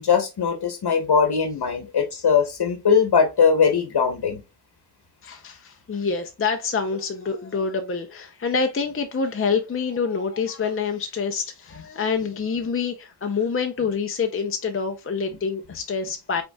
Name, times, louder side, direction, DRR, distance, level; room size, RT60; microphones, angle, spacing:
voice 1, 0.0-4.4, left 6 dB, 70° left, 1.0 m, -20 dB
voice 2, 5.2-16.4, left 5 dB, 35° left, 0.5 m, -26 dB
5.2 x 4.4 x 2.2 m
wide cardioid pair, 95°, 41 cm